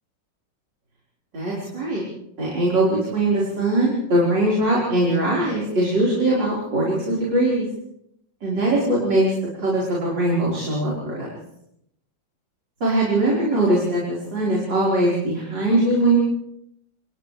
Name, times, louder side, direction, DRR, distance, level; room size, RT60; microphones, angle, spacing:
voice 1, 1.3-2.0 2.4-7.7 8.4-9.3 9.6-11.3 12.8-16.2, right 1 dB, 75° right, -5 dB, 5.6 m, -21 dB
28.5 x 27.5 x 3.4 m, 0.76 s
omnidirectional pair, 2.0 m